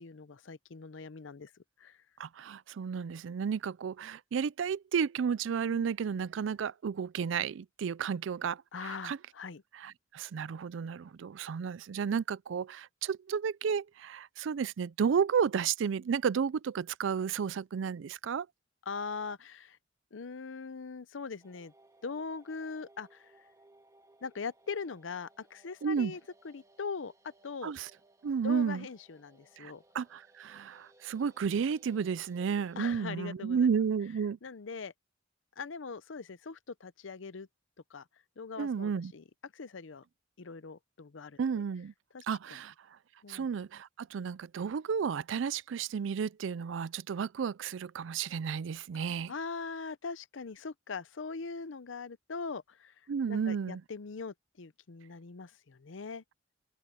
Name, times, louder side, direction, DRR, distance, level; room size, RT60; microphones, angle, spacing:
voice 1, 0.0-1.5 1.8-2.0 8.7-9.6 18.9-19.8 20.1-21.7 22.0-23.3 24.2-27.7 28.4-29.8 32.8-33.7 34.4-34.9 35.6-37.5 37.9-38.0 38.4-40.0 40.4-41.4 42.1-42.2 42.5-42.6 43.2-43.5 48.9-49.0 49.3-52.9 53.3-56.2, left 5 dB, 80° left, 0.7 m, -41 dB
voice 2, 2.2-9.2 9.7-18.5 25.8-26.1 27.6-27.9 28.2-28.9 29.6-34.4 38.6-39.1 41.4-41.9 42.3-42.7 43.3-49.3 53.1-53.8, right 6 dB, 75° right, 0.4 m, -32 dB
sound 1, 21.4-33.1, right 2 dB, 15° right, 1.9 m, -63 dB
open air
head